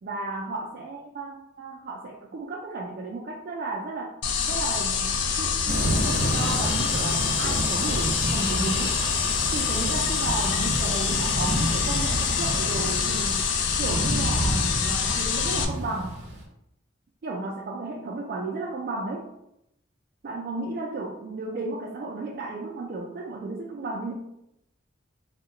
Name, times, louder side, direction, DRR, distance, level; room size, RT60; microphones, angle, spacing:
voice 1, 0.0-5.6 6.0-9.0 9.5-13.5 13.8-16.2 17.2-19.3 20.2-24.1, right 2 dB, 50° right, -2 dB, 0.3 m, -33 dB
sound 1, 4.2-15.7, left 6 dB, 65° left, 0.3 m, -26 dB
Thunder / Rain, 5.7-16.4, right 1 dB, 75° right, 0.7 m, -30 dB
2.7 x 2.1 x 3.7 m, 0.83 s
head